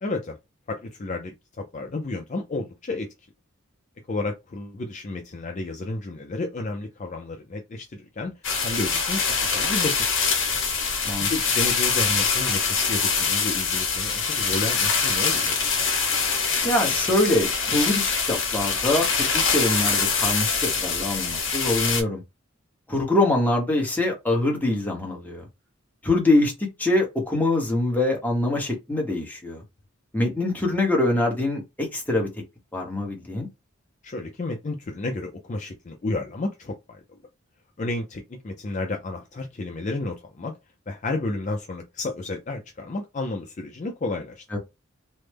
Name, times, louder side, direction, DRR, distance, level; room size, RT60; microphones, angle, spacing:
voice 1, 0.0-0.4 0.7-3.1 4.1-8.3 8.6-10.2 11.2-15.6 34.0-37.0 37.8-40.5 40.9-44.4, left 2 dB, 35° left, 0.4 m, -31 dB
sound 1, 8.4-22.0, left 5 dB, 60° left, 1.1 m, -24 dB
voice 2, 16.6-22.2 22.9-25.4 26.0-29.6 30.1-32.3 32.7-33.5 44.5-44.6, left 2 dB, 10° left, 0.9 m, -24 dB
3.2 x 2.1 x 3.3 m
head